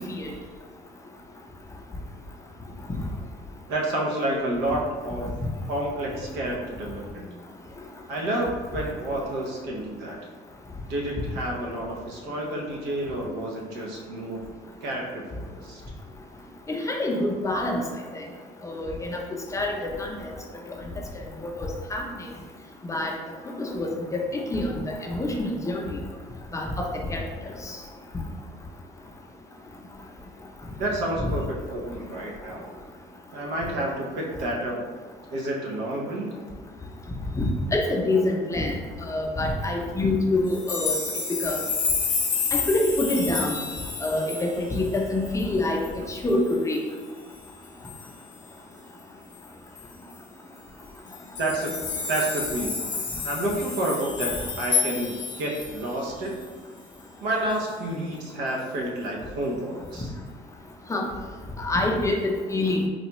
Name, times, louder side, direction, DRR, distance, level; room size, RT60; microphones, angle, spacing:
voice 1, 3.7-5.3 5.7-7.3 8.1-10.2 10.9-14.4 14.8-15.8 30.8-32.7 33.3-34.8 35.3-36.4 51.4-51.7 52.1-52.8 53.2-54.3 54.6-56.4 57.2-60.1, right 1 dB, 85° right, -2 dB, 0.8 m, -29 dB
voice 2, 16.7-17.8 18.6-19.2 19.5-20.1 21.4-22.0 22.9-23.1 23.6-26.0 26.5-27.2 27.7-27.8 31.2-31.3 37.4-38.7 39.0-41.0 41.4-41.6 42.5-43.5 44.0-45.8 46.1-46.8 60.9-61.1 61.6-62.9, left 2 dB, 20° left, 0 dB, 0.5 m, -26 dB
sound 1, 40.5-45.0 45.4-45.5 45.8-45.9 46.3-46.8 47.9-48.1 49.8-49.9 50.1-50.2 51.1-55.9 56.4-56.5, left 5 dB, 50° left, 0.8 m, -29 dB
3.9 x 2.3 x 2.9 m, 1.5 s
cardioid pair, 110°, 17 cm